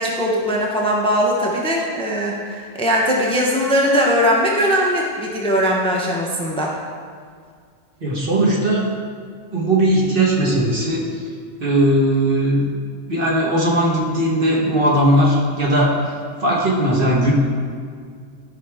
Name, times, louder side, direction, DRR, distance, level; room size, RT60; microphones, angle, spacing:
voice 1, 0.0-6.7, equal, 5° left, -2 dB, 0.8 m, -20 dB
voice 2, 8.0-8.8 9.5-11.0 11.6-12.7 13.1-16.0 16.4-17.3, right 1 dB, 45° right, -4 dB, 1.6 m, -18 dB
12.0 x 5.4 x 3.5 m, 2.1 s
omnidirectional pair, 1.3 m